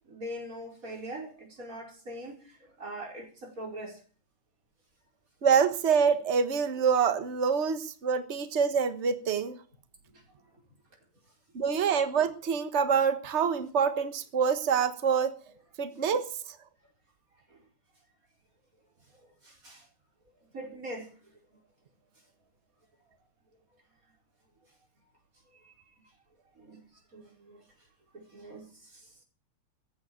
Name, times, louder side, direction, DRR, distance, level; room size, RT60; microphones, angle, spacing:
voice 1, 0.1-4.0 10.1-10.2 17.5-17.6 19.4-19.9 20.5-21.1 25.5-25.7 26.6-26.8 27.1-27.7 28.1-29.1, right 1 dB, 25° right, 5.2 m, -42 dB
voice 2, 5.4-9.6 11.5-15.3 15.8-16.2, right 6 dB, 85° right, 0.6 m, -26 dB
14.5 x 9.7 x 8.8 m
omnidirectional pair, 3.3 m